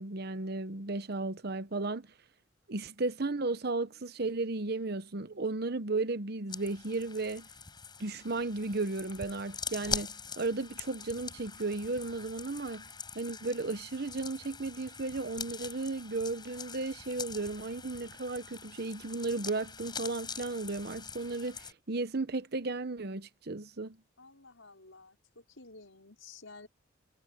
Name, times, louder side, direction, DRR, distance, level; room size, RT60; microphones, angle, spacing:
voice 1, 0.0-2.1 2.7-7.5 8.0-12.9 13.1-24.0, right 3 dB, 55° right, 1.0 m, -34 dB
sound 1, 6.5-21.7, left 6 dB, 20° left, 5.4 m, -43 dB
voice 2, 24.2-26.7, left 3 dB, 85° left, 5.4 m, -52 dB
head